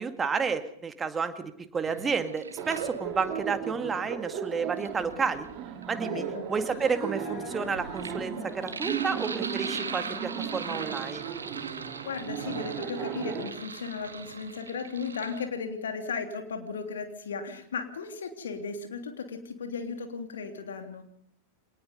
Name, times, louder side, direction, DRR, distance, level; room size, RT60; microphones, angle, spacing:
voice 1, 0.0-5.5 5.9-11.3, right 5 dB, 15° right, 8 dB, 2.1 m, -31 dB
Sink (filling or washing), 1.9-3.4 4.5-15.5, right 5 dB, 75° right, 1.9 m, -41 dB
Laughter, 2.6-13.5, right 8 dB, 35° right, 5.1 m, -36 dB
sound 1, 2.8-12.9, left 6 dB, 45° left, 3.3 m, -48 dB
voice 2, 6.1-6.5 12.0-21.0, left 5 dB, 65° left, 5 dB, 3.3 m, -36 dB
26.0 x 19.0 x 5.4 m, 0.66 s
figure-of-eight pair, 90°, 0 cm